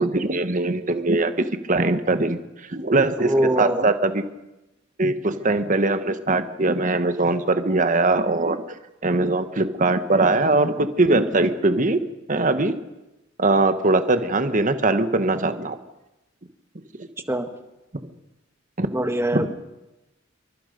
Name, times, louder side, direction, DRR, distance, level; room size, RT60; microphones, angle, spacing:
voice 1, 0.0-2.4 2.7-4.2 5.0-8.6 9.0-12.0 12.3-12.7 13.4-15.8 17.0-17.1 18.8-18.9 19.3-19.5, right 2 dB, 40° right, 9 dB, 1.4 m, -21 dB
voice 2, 3.2-3.8 17.3-17.5 18.9-19.5, right 1 dB, 15° right, 7 dB, 1.4 m, -23 dB
27.0 x 24.0 x 5.4 m, 1.0 s
head